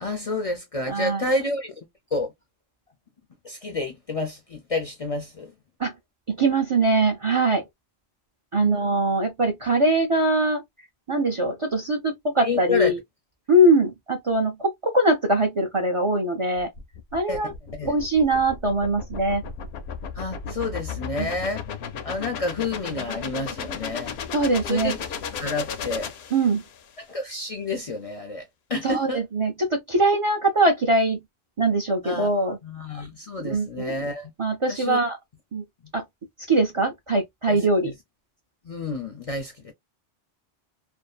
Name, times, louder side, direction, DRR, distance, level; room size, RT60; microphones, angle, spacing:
voice 1, 0.0-1.7 2.1-2.3 3.4-5.5 8.6-8.8 12.4-12.9 17.3-17.4 17.7-18.0 20.1-21.6 22.0-24.2 24.6-25.0 25.3-26.1 27.0-29.2 32.0-34.3 34.7-35.0 37.5-37.9 38.6-39.7, left 2 dB, 50° left, 0.4 m, -30 dB
voice 2, 0.9-1.2 5.8-5.9 6.3-7.6 8.5-10.6 11.1-13.0 13.5-16.7 17.1-17.5 17.9-19.4 21.2-21.3 24.3-24.9 26.3-26.6 28.8-31.2 31.6-32.6 33.4-33.9 34.4-35.2 35.5-35.6 35.9-36.0 36.5-37.9, right 2 dB, 40° right, 0.4 m, -22 dB
sound 1, 16.6-26.9, left 6 dB, 80° left, 0.8 m, -35 dB
2.6 x 2.4 x 2.3 m
omnidirectional pair, 1.1 m